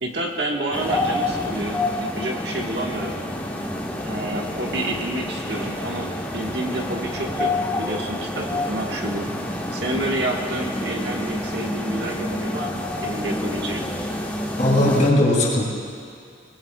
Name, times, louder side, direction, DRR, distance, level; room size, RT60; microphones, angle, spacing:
voice 1, 0.0-3.2 4.0-9.3 9.7-13.8, right 1 dB, 60° right, 0 dB, 1.6 m, -29 dB
sound 1, 0.7-15.1, left 1 dB, 10° left, 1.2 m, -28 dB
voice 2, 14.6-15.7, left 1 dB, 40° left, -3 dB, 3.2 m, -18 dB
24.0 x 19.5 x 2.4 m, 2.3 s
head